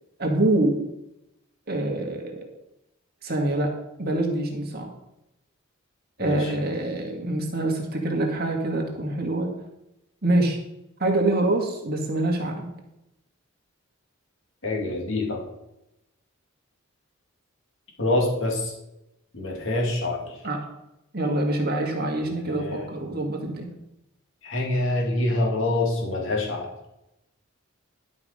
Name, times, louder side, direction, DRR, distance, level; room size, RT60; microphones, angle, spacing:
voice 1, 0.2-0.8 1.7-2.5 3.2-4.9 6.2-9.5 10.2-10.6 11.0-12.7 20.4-20.6 21.1-23.7, right 1 dB, 45° right, 1 dB, 1.8 m, -25 dB
voice 2, 6.2-6.5 14.6-15.4 18.0-18.7 19.3-20.4 22.5-22.9 24.4-26.7, left 2 dB, 60° left, -1 dB, 2.4 m, -26 dB
11.5 x 5.5 x 5.0 m, 0.88 s
head